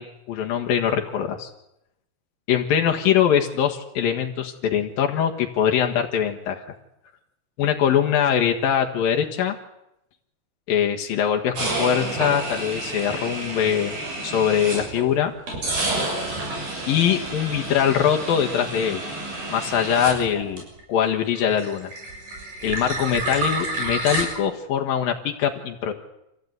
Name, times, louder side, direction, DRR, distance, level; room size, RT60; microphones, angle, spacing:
voice 1, 0.0-1.5 2.5-6.7 7.6-9.6 10.7-13.9 14.2-15.3 16.9-19.0 19.5-20.6 20.9-21.9 22.6-25.9, left 9 dB, 75° left, 3 dB, 3.4 m, -22 dB
sound 1, 11.6-15.1 15.5-21.0 21.3-24.2, right 2 dB, 75° right, 8.6 m, -29 dB
26.5 x 16.5 x 9.5 m, 0.86 s
omnidirectional pair, 4.2 m